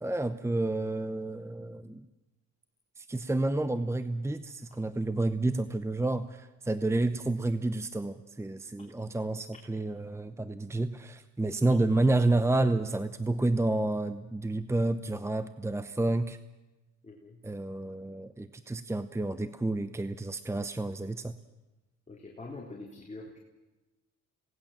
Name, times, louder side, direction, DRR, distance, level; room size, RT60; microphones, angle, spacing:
voice 1, 0.0-2.0 3.0-16.4 17.4-21.3, right 2 dB, 10° right, 12 dB, 0.8 m, -30 dB
voice 2, 17.0-17.4 22.1-23.4, left 2 dB, 25° left, 0 dB, 3.6 m, -44 dB
26.5 x 19.0 x 7.4 m, 1.1 s
cardioid pair, 90°, 30 cm